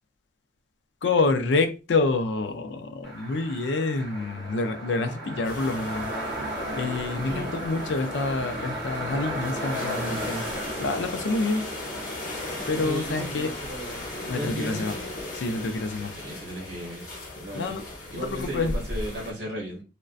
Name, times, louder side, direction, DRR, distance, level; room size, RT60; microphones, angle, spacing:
voice 1, 1.0-6.1 6.7-10.4 10.8-11.6 12.7-13.5 14.3-15.0 15.3-16.2 17.5-17.8 18.1-18.7, left 3 dB, 70° left, 0.4 m, -27 dB
sound 1, 3.0-14.4, right 1 dB, 5° left, 1.0 m, -35 dB
sound 2, 5.4-19.3, left 1 dB, 50° left, 1.0 m, -37 dB
voice 2, 7.2-7.6 12.8-14.1 14.3-14.8 16.2-17.1 17.4-17.7 18.1-19.8, equal, 55° right, 0.7 m, -35 dB
2.5 x 2.1 x 2.3 m
head